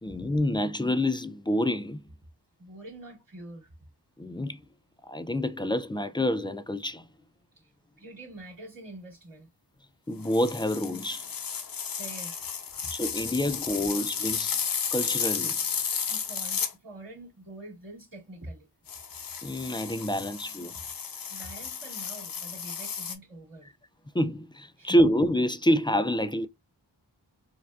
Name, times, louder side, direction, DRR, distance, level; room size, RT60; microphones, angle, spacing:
voice 1, 0.0-2.0 4.2-4.6 5.0-7.1 10.1-11.2 12.9-14.6 14.9-15.6 19.4-20.7 24.1-26.5, equal, 10° left, 0.3 m, -27 dB
voice 2, 2.6-3.7 7.5-7.7 8.0-9.5 11.9-12.5 16.0-18.7 21.3-23.7 24.8-25.0, right 1 dB, 50° right, 2.1 m, -45 dB
sound 1, 10.2-16.7 18.9-23.1, left 6 dB, 55° left, 0.7 m, -33 dB
4.4 x 2.4 x 2.3 m
cardioid pair, 55°, 42 cm